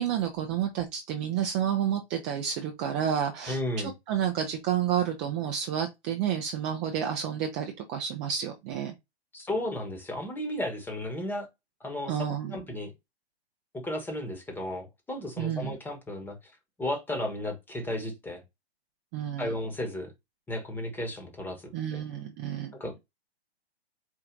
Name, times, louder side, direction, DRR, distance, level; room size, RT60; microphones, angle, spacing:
voice 1, 0.0-3.6 4.1-8.9 12.1-12.6 15.4-15.8 19.1-19.5 21.7-22.7, right 9 dB, 20° right, 0.5 m, -30 dB
voice 2, 3.5-3.9 9.3-11.5 11.8-12.2 12.5-12.9 13.7-16.4 16.8-18.4 19.4-20.1 20.5-22.0 22.8-23.0, left 1 dB, 5° left, 1.1 m, -34 dB
4.6 x 2.4 x 3.7 m
hypercardioid pair, 130°, 32 cm